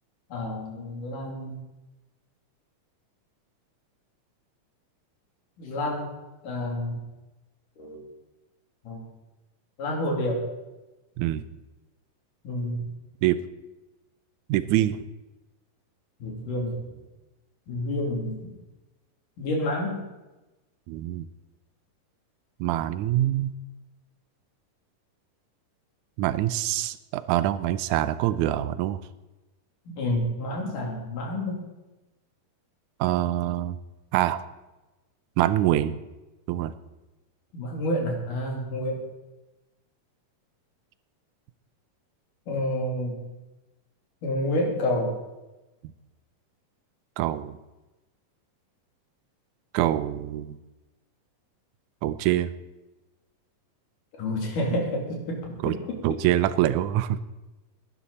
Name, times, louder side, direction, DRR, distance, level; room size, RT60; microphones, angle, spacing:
voice 1, 0.3-1.6 5.6-6.1 6.4-7.0 7.8-8.0 8.8-9.0 9.8-10.4 12.4-12.8 16.2-16.9 17.7-18.5 19.4-20.0 28.3-28.5 29.9-31.6 37.5-39.0 42.5-43.2 44.2-45.2 54.2-55.7, left 1 dB, 70° left, -1 dB, 4.7 m, -29 dB
voice 2, 11.2-11.5 13.2-13.4 14.5-15.1 20.9-21.3 22.6-23.5 26.2-29.0 33.0-33.8 34.1-34.4 35.4-36.0 36.5-36.7 45.8-45.9 47.2-47.6 49.7-50.6 52.0-52.5 55.6-55.8 56.0-57.2, right 13 dB, 80° right, 14 dB, 1.9 m, -25 dB
20.0 x 12.0 x 4.3 m, 1.1 s
omnidirectional pair, 3.8 m